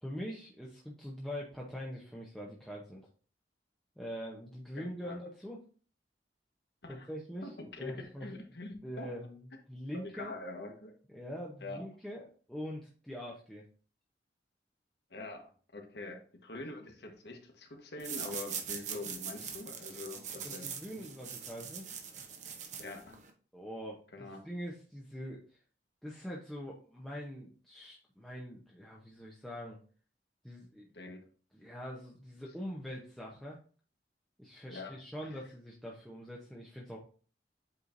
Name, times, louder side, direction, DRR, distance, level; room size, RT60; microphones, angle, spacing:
voice 1, 0.0-3.1 4.0-5.6 6.9-7.5 7.8-8.3 8.8-10.3 11.1-13.6 20.4-21.9 23.5-25.6 26.0-29.8 30.4-30.9 31.5-33.6 34.4-37.0, equal, ahead, -4 dB, 0.8 m, -43 dB
voice 2, 4.8-5.2 6.8-7.1 7.4-9.1 10.1-10.9 11.6-11.8 15.1-21.0 22.8-23.2 24.1-24.4 30.9-31.2 34.7-35.0 35.2-35.3, left 2 dB, 65° left, 3 dB, 1.3 m, -45 dB
sound 1, 18.0-23.3, right 7 dB, 40° right, 0.9 m, -42 dB
8.2 x 4.4 x 2.6 m, 0.40 s
head